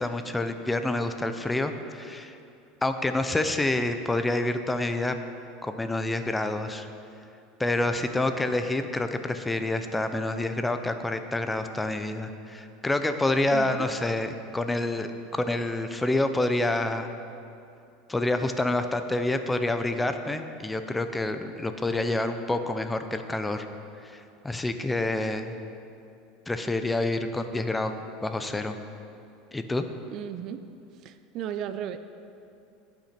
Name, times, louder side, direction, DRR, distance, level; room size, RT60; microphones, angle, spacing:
voice 1, 0.0-2.4 2.8-5.2 5.6-6.9 7.6-17.1 18.1-23.7 24.0-25.5 26.5-28.8 29.5-29.9, left 2 dB, 10° left, 8 dB, 0.6 m, -28 dB
voice 2, 13.5-13.9 30.1-30.6 31.0-32.0, right 10 dB, 50° right, 11 dB, 0.4 m, -35 dB
16.0 x 6.0 x 4.4 m, 2.6 s
supercardioid pair, 115°, 0 cm